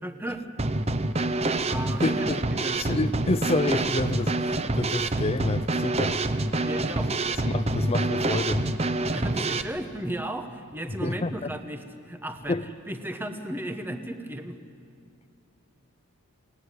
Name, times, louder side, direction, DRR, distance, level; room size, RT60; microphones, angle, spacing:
voice 1, 0.0-0.4 1.7-2.8 6.6-7.1 9.1-12.6 12.9-14.6, right 1 dB, 10° right, 1.2 m, -35 dB
Drum kit / Snare drum, 0.6-9.6, right 2 dB, 30° right, 0.8 m, -26 dB
voice 2, 2.0-2.4 2.8-6.2 7.5-8.7 11.0-11.5 12.5-12.7, left 2 dB, 25° left, 0.5 m, -28 dB
27.5 x 19.0 x 9.8 m
head